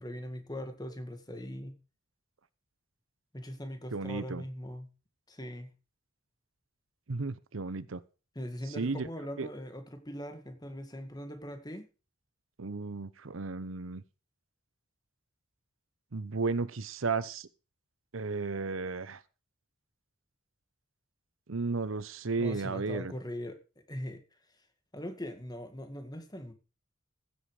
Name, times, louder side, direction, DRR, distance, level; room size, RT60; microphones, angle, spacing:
voice 1, 0.0-1.8 3.3-4.9 5.3-5.7 8.4-11.9 22.4-23.6 23.9-24.2 24.9-26.5, equal, 20° left, 2.0 m, -41 dB
voice 2, 3.9-4.4 7.1-8.0 8.8-9.1 9.4-9.5 12.6-14.0 16.1-17.5 18.1-19.2 21.5-23.1, right 4 dB, 80° right, 0.8 m, -34 dB
15.5 x 8.2 x 4.9 m
head